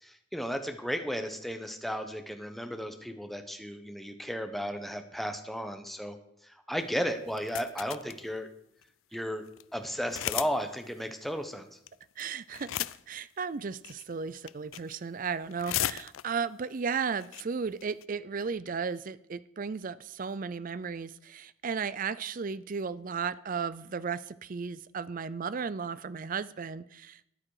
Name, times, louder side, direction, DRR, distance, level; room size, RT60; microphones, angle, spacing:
voice 1, 0.0-6.2 6.4-8.5 9.1-9.4 9.7-11.8, equal, ahead, 7 dB, 1.0 m, -34 dB
sound 1, 7.3-8.2 8.8-8.9 9.1-9.2 9.5-9.6 10.1-10.6 10.8-10.9 11.9-12.2 12.5-13.2 13.8-14.1 14.5-14.9 15.3-16.5 16.9-17.0 17.2-17.4 17.8-18.0, left 13 dB, 85° left, 0.4 m, -34 dB
voice 2, 12.2-27.2, right 5 dB, 40° right, 16 dB, 0.4 m, -35 dB
13.5 x 9.7 x 4.9 m, 0.75 s
head